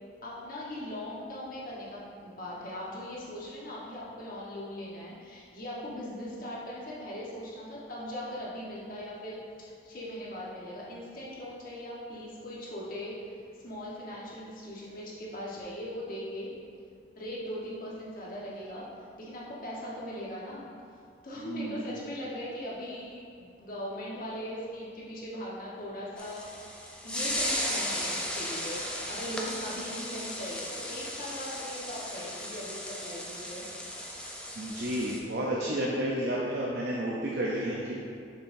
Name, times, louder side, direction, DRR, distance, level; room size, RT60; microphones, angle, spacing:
voice 1, 0.2-13.2 13.6-16.5 17.1-18.9 19.2-20.7 21.2-26.7 27.0-33.6, equal, 50° left, -6 dB, 1.3 m, -39 dB
voice 2, 21.4-21.8 34.6-38.0, right 1 dB, 60° right, -4 dB, 0.7 m, -31 dB
sound 1, 26.2-35.2, left 1 dB, 5° left, 0.5 m, -36 dB
6.8 x 5.7 x 2.7 m, 2.3 s
head